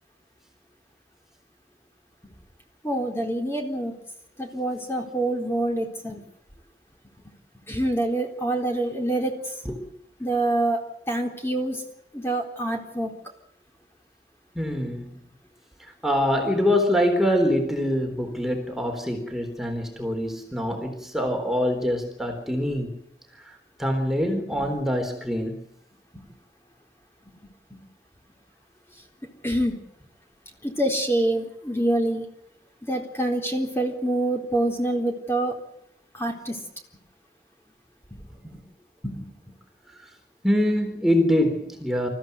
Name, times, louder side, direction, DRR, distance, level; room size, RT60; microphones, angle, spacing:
voice 1, 2.8-3.9 4.4-6.2 7.7-9.3 10.2-11.8 12.1-13.1 24.5-24.7 26.1-26.3 27.7-27.8 29.4-29.8 30.6-32.3 32.9-35.5 36.1-36.6 38.1-38.6 39.0-39.5, right 1 dB, 15° left, 3.9 m, -26 dB
voice 2, 14.6-15.2 15.8-23.0 23.4-25.7 39.9-40.1 40.4-42.1, equal, ahead, 3.8 m, -25 dB
29.0 x 15.0 x 8.1 m
head